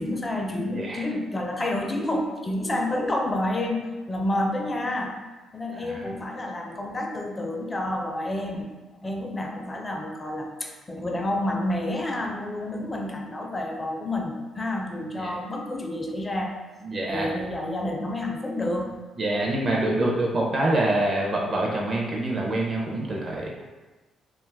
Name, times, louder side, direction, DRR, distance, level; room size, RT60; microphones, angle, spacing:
voice 1, 0.0-5.2 5.5-8.7 9.0-16.6 17.1-19.0, left 1 dB, 20° left, 2 dB, 0.4 m, -29 dB
voice 2, 0.7-1.1 5.7-6.1 15.1-15.3 16.8-17.3 19.2-23.5, right 1 dB, 40° right, -2 dB, 0.5 m, -26 dB
2.4 x 2.3 x 3.4 m, 1.2 s
cardioid pair, 90°, 0 cm